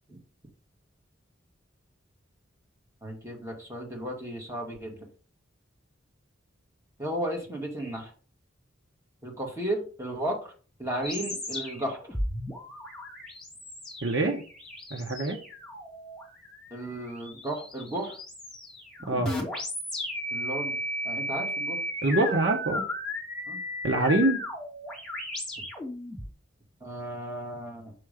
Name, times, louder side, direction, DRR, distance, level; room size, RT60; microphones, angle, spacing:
voice 1, 3.0-5.0 7.0-8.1 9.2-10.5 10.8-12.0 16.7-18.1 20.3-20.8 21.1-21.8 23.5-23.6 26.8-27.9, right 1 dB, 15° right, 0 dB, 1.8 m, -34 dB
sound 1, 11.0-26.3, left 1 dB, ahead, 2.4 m, -35 dB
voice 2, 14.0-14.4 14.9-15.4 19.1-19.3 22.0-22.9 23.8-24.4, right 2 dB, 65° right, 2 dB, 1.1 m, -25 dB
6.2 x 3.7 x 5.0 m, 0.39 s
head